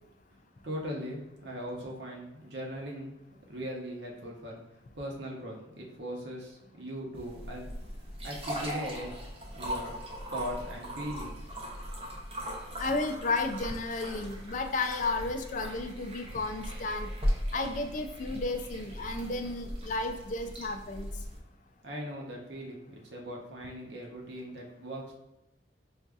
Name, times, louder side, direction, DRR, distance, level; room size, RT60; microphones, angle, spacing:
voice 1, 0.6-3.1 3.5-4.6 4.9-7.7 8.2-9.1 9.5-9.9 10.3-11.4 21.8-25.1, equal, 70° right, -1 dB, 0.9 m, -39 dB
sound 1, 7.2-21.4, equal, 30° right, 0.7 m, -38 dB
voice 2, 12.8-17.1 17.5-21.1, left 3 dB, 45° left, 6 dB, 0.3 m, -33 dB
4.8 x 2.6 x 2.3 m, 0.95 s
head